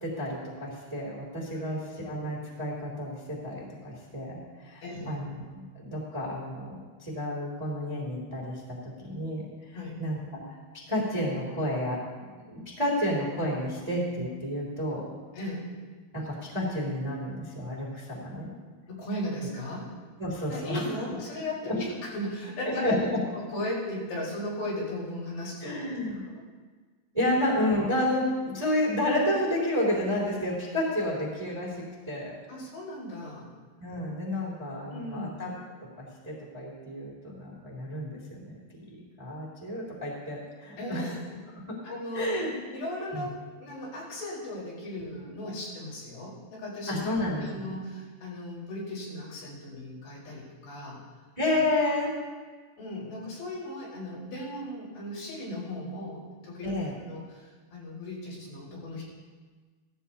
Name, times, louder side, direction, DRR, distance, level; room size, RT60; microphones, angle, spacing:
voice 1, 0.0-9.5 10.0-10.4 10.9-12.0 12.4-15.1 16.1-18.5 20.2-20.9 21.6-21.8 22.6-23.2 25.6-26.2 27.1-32.3 33.8-35.5 36.0-38.6 38.9-41.1 41.7-41.8 42.1-42.5 43.1-43.3 46.9-47.8 51.4-52.2 56.6-57.0, left 1 dB, 10° right, -5 dB, 1.7 m, -31 dB
voice 2, 4.8-5.2 9.7-10.0 15.3-15.7 18.9-19.9 20.5-23.0 23.3-25.8 26.3-26.4 27.2-27.3 32.5-33.5 34.9-35.4 40.8-41.2 41.8-42.3 42.7-51.0 52.8-56.8 57.0-59.0, left 1 dB, 75° left, -7 dB, 6.3 m, -37 dB
16.5 x 14.5 x 2.8 m, 1.4 s
omnidirectional pair, 4.8 m